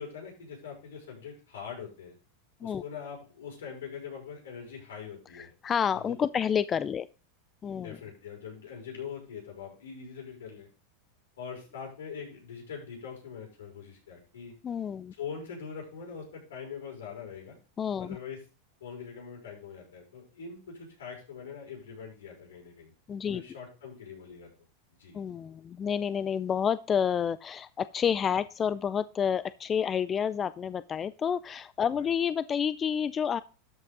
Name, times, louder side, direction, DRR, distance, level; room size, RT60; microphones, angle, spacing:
voice 1, 0.0-2.2 2.6-5.5 5.9-6.2 7.7-10.7 11.4-14.5 15.2-17.6 18.0-18.4 18.8-22.9 23.3-24.5 25.0-25.2 31.9-32.1, left 6 dB, 85° left, -1 dB, 5.7 m, -43 dB
voice 2, 5.3-7.1 7.6-8.0 14.6-15.1 17.8-18.2 23.1-23.4 25.1-33.4, left 7 dB, 25° left, 16 dB, 0.4 m, -29 dB
12.5 x 5.7 x 3.8 m, 0.34 s
hypercardioid pair, 120°, 0 cm